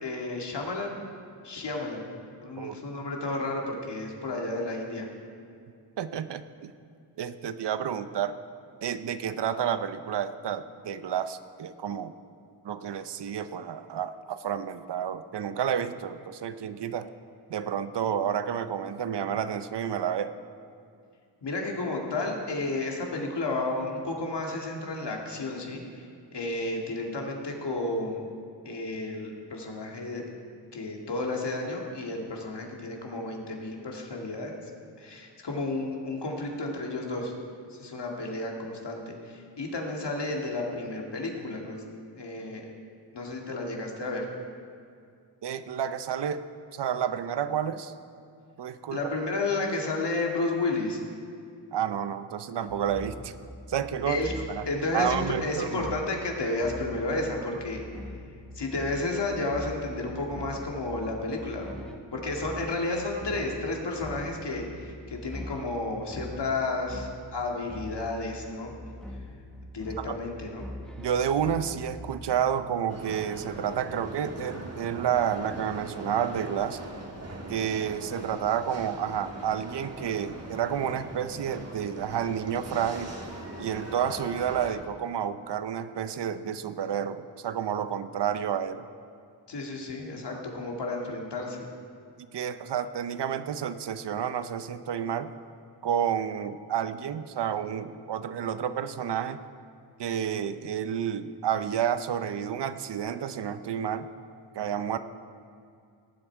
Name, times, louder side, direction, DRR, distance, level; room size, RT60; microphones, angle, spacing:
voice 1, 0.0-1.0 1.4-2.0 2.4-5.1 21.4-26.1 26.3-28.3 28.6-30.2 30.7-34.5 35.0-37.3 37.7-41.8 42.2-42.6 43.1-44.3 48.9-51.0 54.1-54.3 54.7-57.9 58.5-61.6 62.1-68.7 69.7-70.7 89.5-91.7, left 2 dB, 60° left, 0 dB, 2.2 m, -32 dB
voice 2, 6.0-6.7 7.2-8.4 8.8-12.1 12.6-17.1 17.5-20.3 45.4-46.4 46.7-47.9 48.6-49.0 51.7-53.3 53.7-54.2 54.5-54.7 54.9-55.9 70.0-70.2 71.0-76.8 77.5-83.1 83.6-88.9 92.3-95.3 95.8-99.4 100.0-104.1 104.5-105.0, right 8 dB, 60° right, 12 dB, 0.7 m, -30 dB
sound 1, 52.7-72.5, left 1 dB, ahead, 1.2 m, -43 dB
sound 2, 72.9-84.7, right 1 dB, 35° right, 2.1 m, -41 dB
18.0 x 7.8 x 4.6 m, 2.3 s
cardioid pair, 45°, 46 cm